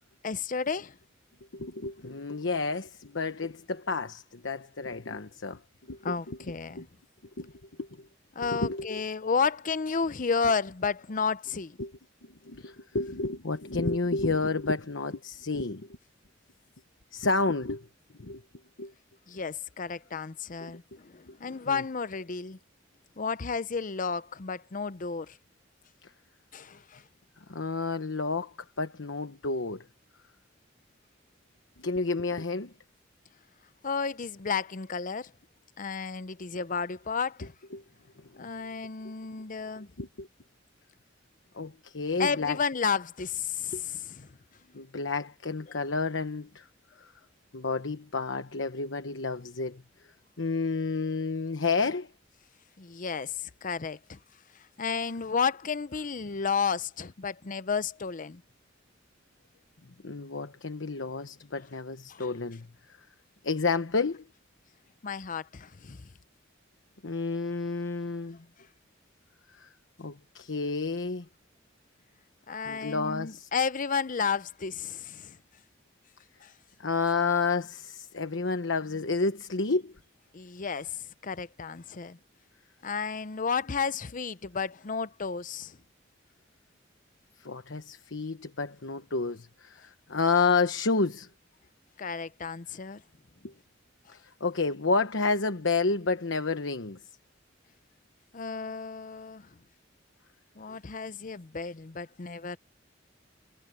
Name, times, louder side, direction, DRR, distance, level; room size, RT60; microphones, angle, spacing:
voice 1, 0.2-0.9 6.0-6.9 8.3-11.8 19.3-22.6 23.2-25.4 26.5-27.0 33.8-35.3 35.8-37.5 38.3-39.9 42.2-44.3 52.8-54.2 54.8-58.4 62.1-62.3 65.0-66.1 72.5-75.4 76.4-76.5 80.3-82.2 82.8-85.8 92.0-93.0 98.3-99.5 100.6-102.6, left 5 dB, 45° left, 0.7 m, -32 dB
voice 2, 1.5-5.6 5.9-6.4 6.7-6.9 7.4-7.5 7.8-8.1 8.4-9.0 11.8-11.9 12.4-15.9 17.1-17.9 18.2-18.4 18.8-18.9 20.6-20.7 21.3-21.4 21.7-21.8 26.0-26.1 27.5-29.9 31.8-32.7 37.7-37.8 38.3-38.5 40.0-40.3 41.5-42.6 44.7-46.7 47.0-47.1 47.5-49.8 50.4-52.1 60.0-62.7 63.4-64.2 67.0-68.4 69.5-69.7 70.0-71.3 72.6-73.5 76.8-79.9 87.4-91.3 93.4-93.5 94.1-97.0, left 3 dB, 70° left, 1.1 m, -30 dB
head